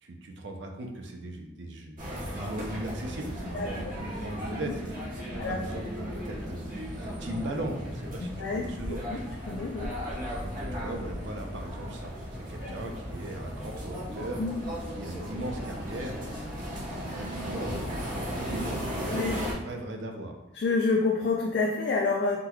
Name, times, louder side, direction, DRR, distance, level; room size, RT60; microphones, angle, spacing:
voice 1, 0.0-2.0 2.3-4.9 5.3-6.7 7.0-9.0 10.4-14.4 15.0-17.9 18.3-20.4, right 1 dB, 65° right, 3 dB, 0.5 m, -38 dB
sound 1, 2.0-19.5, equal, 45° right, 1.0 m, -36 dB
sound 2, 2.5-16.9, right 1 dB, 5° right, 0.5 m, -44 dB
voice 2, 8.2-8.7 9.1-9.2 9.5-9.9 12.6-12.8 14.4-14.6 19.0-19.4 20.5-22.4, left 3 dB, 60° left, 0 dB, 0.3 m, -28 dB
3.7 x 2.9 x 2.3 m, 0.95 s
head